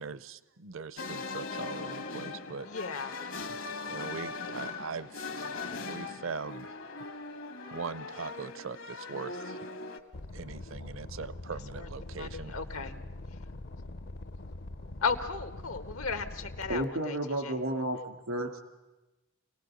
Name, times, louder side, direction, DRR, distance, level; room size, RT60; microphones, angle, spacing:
voice 1, 0.0-2.7 3.9-5.3 5.9-6.8 7.7-9.7 10.3-12.6, right 5 dB, 65° right, 16 dB, 0.6 m, -41 dB
sound 1, 1.0-10.0, left 4 dB, 70° left, 1.5 m, -40 dB
voice 2, 2.6-3.1 5.6-5.8 11.7-13.0 14.9-17.2 17.4-17.6, left 5 dB, 90° left, 8 dB, 1.6 m, -35 dB
sound 2, 10.1-16.9, left 2 dB, 50° left, 0.6 m, -43 dB
voice 3, 16.7-18.6, right 1 dB, 90° right, 6 dB, 2.6 m, -32 dB
25.5 x 18.0 x 6.4 m, 1.1 s
head